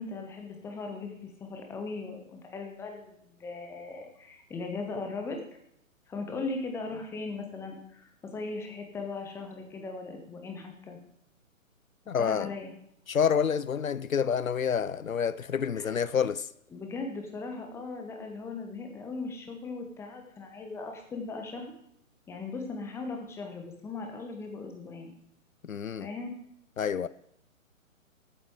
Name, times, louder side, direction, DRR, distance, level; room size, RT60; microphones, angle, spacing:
voice 1, 0.0-5.4 6.1-11.0 12.2-12.7 15.7-15.9 16.7-21.7 22.3-25.1 26.0-26.3, left 3 dB, 5° left, 1.1 m, -38 dB
voice 2, 12.1-12.5 13.1-16.5 25.6-26.1 26.8-27.1, left 7 dB, 80° left, 0.6 m, -28 dB
14.0 x 8.8 x 4.7 m
figure-of-eight pair, 125°, 41 cm